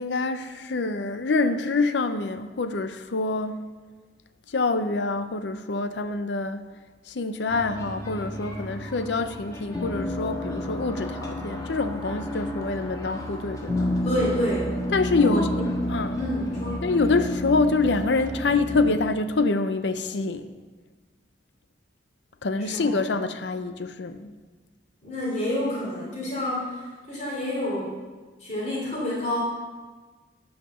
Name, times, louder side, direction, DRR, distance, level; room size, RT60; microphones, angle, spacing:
voice 1, 0.0-3.6 4.5-6.7 7.1-13.9 14.9-15.5 15.9-16.2 16.8-20.5 22.4-24.3, left 3 dB, 75° left, 0.6 m, -26 dB
sound 1, 7.5-19.0, equal, 20° left, 1.4 m, -31 dB
voice 2, 14.0-14.7 15.2-15.6 16.1-16.9 22.6-23.0 25.0-27.9 28.4-29.4, left 1 dB, 40° left, 3.0 m, -28 dB
10.5 x 5.8 x 6.6 m
head